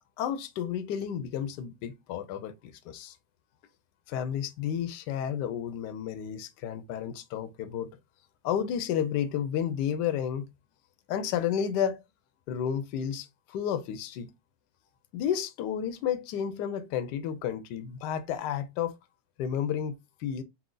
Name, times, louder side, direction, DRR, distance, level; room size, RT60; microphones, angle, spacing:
voice 1, 0.2-3.2 4.1-7.9 8.4-10.5 11.1-12.0 12.5-14.3 15.1-18.9 19.4-20.4, left 9 dB, 75° left, 1.0 m, -31 dB
4.5 x 2.2 x 3.8 m
omnidirectional pair, 2.4 m